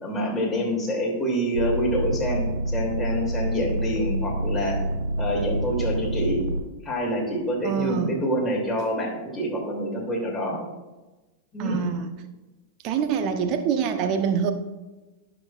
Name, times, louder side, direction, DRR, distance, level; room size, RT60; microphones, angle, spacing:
voice 1, 0.0-4.8 5.2-6.4 6.8-10.6 11.5-11.8, equal, 5° left, -3 dB, 2.8 m, -27 dB
sound 1, 1.5-6.6 7.3-8.0, equal, 80° right, 0.5 m, -27 dB
voice 2, 7.6-8.2 11.6-12.1 12.8-14.5, right 6 dB, 40° right, 8 dB, 0.9 m, -25 dB
15.5 x 6.1 x 2.5 m, 1.1 s
figure-of-eight pair, 90°, 0 cm